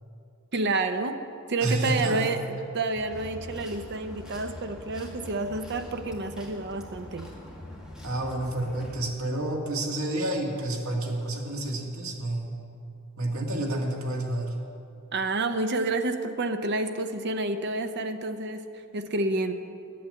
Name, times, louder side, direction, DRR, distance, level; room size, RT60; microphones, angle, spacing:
voice 1, 0.5-1.2 1.5-7.3 15.1-19.5, right 2 dB, 55° right, 8 dB, 0.8 m, -29 dB
voice 2, 1.6-2.3 8.0-12.6 13.2-14.5, right 1 dB, 85° right, 0 dB, 1.9 m, -29 dB
sound 1, 2.9-9.0, left 1 dB, 5° right, 2.0 m, -43 dB
11.0 x 8.6 x 7.8 m, 2.7 s
head